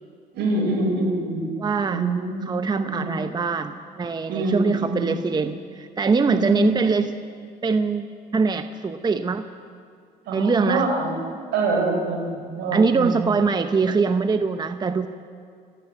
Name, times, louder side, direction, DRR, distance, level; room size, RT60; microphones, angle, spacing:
voice 1, 0.3-1.5 1.9-2.4 2.8-3.1 4.3-5.1 6.3-6.7 10.3-11.2 11.5-13.3, right 2 dB, 80° right, 2 dB, 4.7 m, -25 dB
voice 2, 1.6-2.0 2.5-7.1 7.6-9.4 10.3-10.9 12.7-15.1, right 4 dB, 25° right, 9 dB, 0.8 m, -23 dB
26.0 x 14.5 x 7.9 m, 2.2 s
cardioid pair, 110°, 17 cm